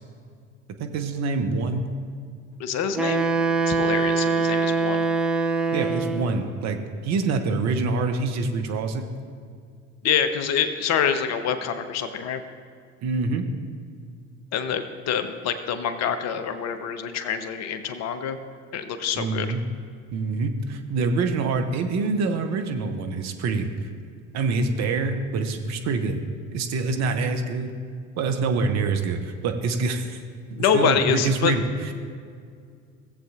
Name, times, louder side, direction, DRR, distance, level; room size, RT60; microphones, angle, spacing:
voice 1, 0.8-1.9 5.7-6.8 7.0-9.1 13.0-13.4 19.1-19.6 20.1-23.7 24.3-26.2 26.5-27.8 28.2-30.2 30.7-31.9, right 4 dB, 45° right, 5 dB, 0.9 m, -25 dB
voice 2, 2.6-3.3 3.7-5.0 10.0-12.4 14.5-18.4 18.7-19.5 30.5-31.5, left 7 dB, 45° left, 10 dB, 0.7 m, -26 dB
Wind instrument woodwind instrument, 2.9-6.4, right 4 dB, ahead, 0.5 m, -23 dB
17.0 x 7.6 x 2.4 m, 2.2 s
figure-of-eight pair, 65°, 38 cm